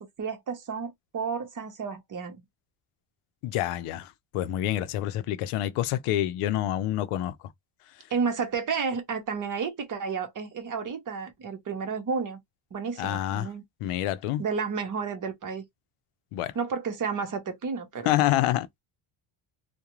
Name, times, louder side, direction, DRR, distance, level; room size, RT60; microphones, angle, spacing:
voice 1, 0.2-2.4 8.1-12.4 12.7-13.6 14.4-15.6 16.5-18.1, right 5 dB, 40° right, 0.8 m, -31 dB
voice 2, 3.4-7.3 13.0-13.5 13.8-14.4 16.3-16.5 18.1-18.8, left 13 dB, 90° left, 0.6 m, -27 dB
2.4 x 2.2 x 2.9 m
cardioid pair, 130°, 50 cm